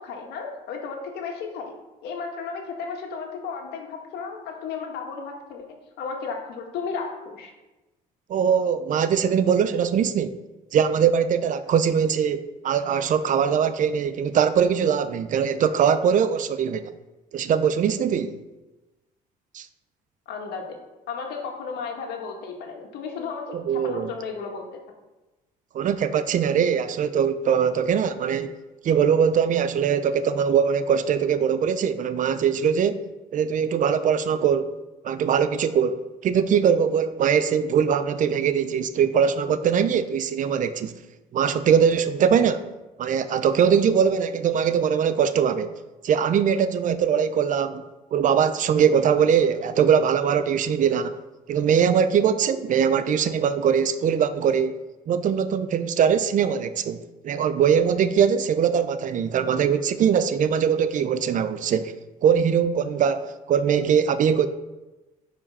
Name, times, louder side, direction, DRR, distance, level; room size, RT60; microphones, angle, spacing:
voice 1, 0.0-1.8 2.0-7.5 20.3-20.8 21.1-24.6, left 5 dB, 75° left, 2 dB, 1.9 m, -34 dB
voice 2, 8.3-10.4 10.7-16.9 17.3-18.4 19.5-19.7 23.5-24.1 25.7-28.6 28.8-33.0 33.3-34.7 35.0-36.0 36.2-40.9 41.3-42.7 43.0-45.7 46.0-47.8 48.1-51.2 51.5-54.8 55.1-57.0 57.2-61.9 62.2-64.5, right 7 dB, 50° right, 12 dB, 0.7 m, -21 dB
9.7 x 5.1 x 5.6 m, 1.1 s
cardioid pair, 100°, 17 cm